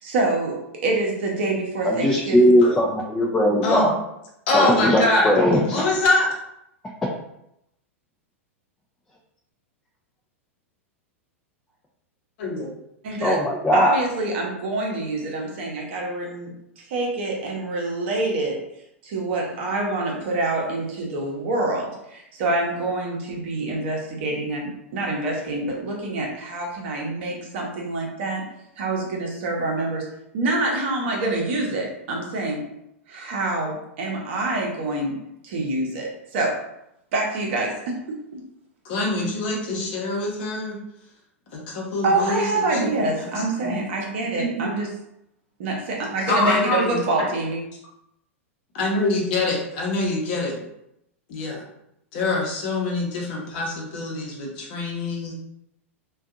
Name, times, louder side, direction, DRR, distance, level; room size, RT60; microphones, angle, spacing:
voice 1, 0.0-2.5 13.0-13.4 13.7-18.6 19.0-28.4 28.8-30.1 30.3-32.6 33.1-35.1 35.4-36.6 37.1-38.4 42.0-44.9 45.6-47.6, right 2 dB, 55° right, 0 dB, 0.7 m, -26 dB
voice 2, 1.8-4.0 4.5-5.8 13.2-14.0, equal, 10° left, -2 dB, 0.3 m, -19 dB
voice 3, 4.5-6.3 12.4-12.7 38.8-40.8 41.5-42.8 43.3-43.7 44.4-44.7 46.3-47.3 48.7-50.6 51.3-51.6 52.1-55.3, left 2 dB, 50° left, -2 dB, 0.8 m, -25 dB
2.6 x 2.3 x 2.5 m, 0.80 s
figure-of-eight pair, 95°, 7 cm